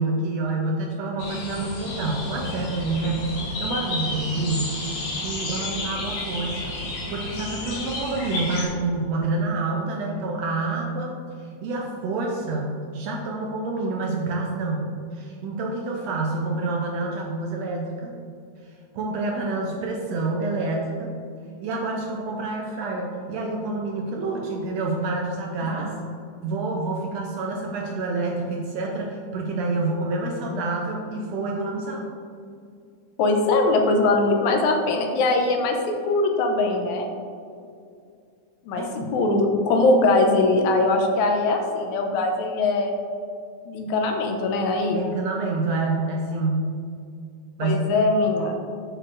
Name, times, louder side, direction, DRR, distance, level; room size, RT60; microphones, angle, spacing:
voice 1, 0.0-4.7 5.2-6.8 7.1-14.8 15.1-18.2 18.9-21.1 21.6-25.9 26.4-32.0 38.7-39.1 44.9-46.7 47.6-47.8, right 3 dB, 75° right, 0 dB, 1.6 m, -27 dB
sound 1, 1.2-8.7, left 2 dB, 60° left, 2.2 m, -31 dB
voice 2, 33.2-37.1 38.7-42.9 43.7-45.0 47.6-48.5, left 2 dB, 80° left, 3 dB, 2.0 m, -21 dB
7.7 x 6.2 x 2.5 m, 2.4 s
omnidirectional pair, 3.5 m